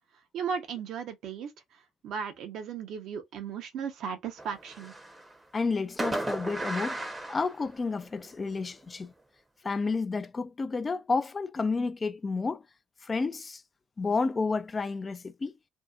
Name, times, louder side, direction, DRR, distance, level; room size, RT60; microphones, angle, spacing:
voice 1, 0.3-4.9, right 6 dB, 65° right, 0.7 m, -36 dB
Fireworks, 4.4-5.4 6.0-8.2, right 2 dB, 20° right, 0.7 m, -35 dB
voice 2, 5.5-7.0 7.3-9.1 9.6-12.6 13.0-13.6 14.0-15.5, left 4 dB, 25° left, 0.3 m, -30 dB
2.7 x 2.3 x 2.3 m
cardioid pair, 100°, 0 cm